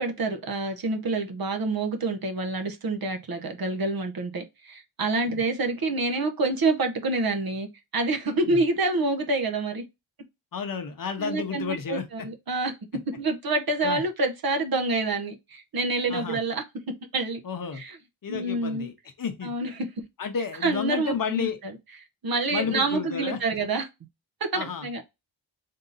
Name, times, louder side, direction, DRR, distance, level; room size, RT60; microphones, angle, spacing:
voice 1, 0.0-7.7 7.9-9.8 11.2-12.7 13.2-16.6 17.1-17.4 17.8-18.0 18.3-18.9 19.4-19.7 20.6-21.5 22.2-23.8 24.4-25.0, right 2 dB, 50° right, 0.8 m, -27 dB
voice 2, 10.5-12.3 13.8-14.0 16.1-16.4 17.4-17.8 18.2-19.5 20.2-21.6 22.5-23.4 24.5-24.9, left 6 dB, 45° left, 0.8 m, -32 dB
3.7 x 2.7 x 3.9 m
wide cardioid pair, 150°, 46 cm